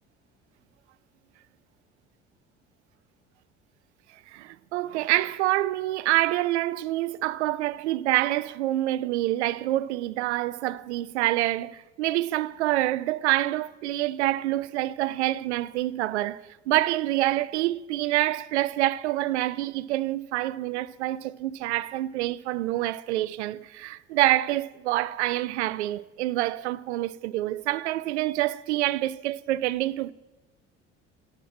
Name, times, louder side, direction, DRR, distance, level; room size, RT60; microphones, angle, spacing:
voice 1, 4.3-30.1, right 16 dB, 70° right, 0.5 m, -27 dB
9.9 x 7.4 x 9.4 m
figure-of-eight pair, 55°, 36 cm